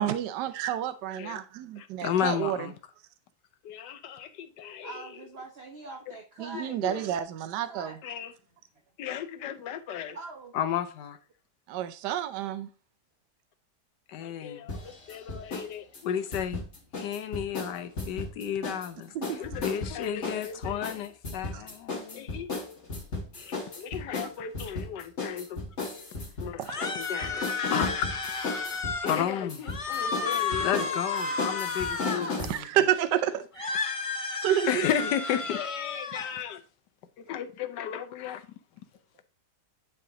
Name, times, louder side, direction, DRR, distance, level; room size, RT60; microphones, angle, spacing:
voice 1, 0.0-2.7 6.4-7.9 11.7-12.7 19.1-19.4 21.5-21.6 26.6-26.8 32.4-33.9 34.4-34.9, right 11 dB, 85° right, 1.2 m, -29 dB
voice 2, 1.8-2.7 3.6-5.1 6.5-7.1 8.0-8.3 9.0-10.2 10.5-11.2 14.1-16.6 16.9-22.5 23.4-25.6 26.4-28.1 29.0-32.7 34.7-36.6 37.2-38.5, left 9 dB, 85° left, 1.4 m, -33 dB
voice 3, 4.8-6.8 7.6-8.0 10.1-10.5 17.7-17.8, right 3 dB, 45° right, 0.9 m, -43 dB
sound 1, 14.7-15.7 15.9-18.9 19.2-32.6, left 3 dB, 45° left, 1.9 m, -35 dB
sound 2, 26.6-29.3 29.6-32.4 33.5-36.3, left 4 dB, 65° left, 0.3 m, -32 dB
10.0 x 3.5 x 3.8 m
omnidirectional pair, 1.8 m